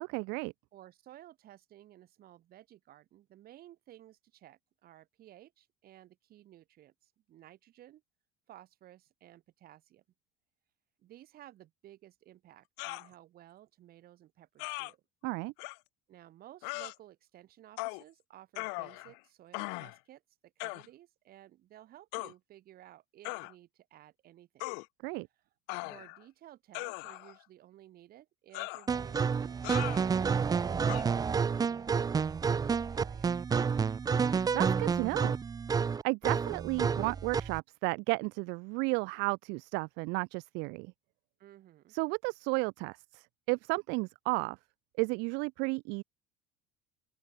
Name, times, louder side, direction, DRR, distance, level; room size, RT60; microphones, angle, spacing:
voice 1, 0.1-0.5 15.2-15.5 25.0-25.3 34.5-35.3 36.0-40.9 41.9-44.6 45.0-46.0, right 29 dB, 70° right, 0.7 m, -33 dB
voice 2, 0.7-8.0 8.5-10.0 11.0-15.0 16.1-24.8 25.8-31.0 31.3-33.3 41.4-41.9, right 13 dB, 55° right, 2.9 m, -56 dB
sound 1, 12.8-13.1 14.6-14.9 15.6-15.8 16.6-16.9 17.8-18.0 18.5-19.2 19.5-20.0 20.6-20.9 22.1-22.3 23.2-23.5 24.6-24.8 25.7-26.2 26.7-27.4 28.5-28.9 29.6-30.0 30.9-31.0, left 35 dB, 75° left, 1.0 m, -39 dB
sound 2, 28.9-37.6, right 6 dB, 20° right, 0.5 m, -30 dB
open air
supercardioid pair, 95°, 18 cm